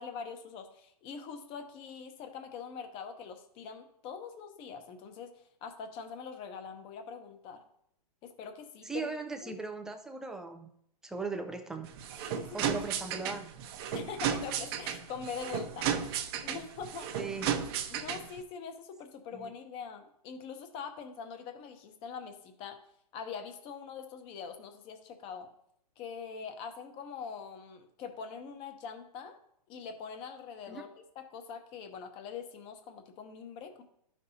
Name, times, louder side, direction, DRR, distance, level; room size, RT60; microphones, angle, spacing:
voice 1, 0.0-7.6 8.2-9.1 9.4-9.5 12.3-13.4 13.9-17.3 17.9-22.8 23.1-25.5 26.0-29.4 29.7-33.8, left 6 dB, 25° left, 6 dB, 0.9 m, -43 dB
voice 2, 8.8-10.7 11.0-11.9 12.5-13.5 17.2-17.5 19.3-19.5 30.7-30.8, right 4 dB, 5° right, 5 dB, 0.3 m, -38 dB
sound 1, 11.8-18.4, right 8 dB, 40° right, 0.7 m, -34 dB
12.5 x 5.3 x 2.8 m, 0.72 s
hypercardioid pair, 150°, 20 cm